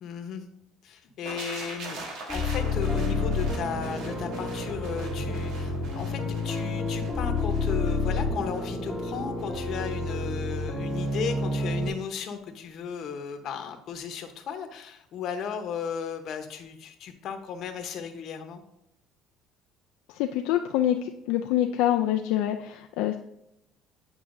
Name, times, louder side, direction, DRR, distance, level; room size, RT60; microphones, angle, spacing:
voice 1, 0.0-0.4 0.8-18.6, left 7 dB, 60° left, 6 dB, 0.9 m, -35 dB
sound 1, 1.3-11.1 11.4-11.6, right 2 dB, 75° right, 1.5 m, -41 dB
sound 2, 2.3-11.9, left 3 dB, 15° left, 0.9 m, -29 dB
voice 2, 20.1-23.2, left 12 dB, 80° left, 4 dB, 0.3 m, -26 dB
8.8 x 4.6 x 2.6 m, 0.82 s
supercardioid pair, 105°, 0 cm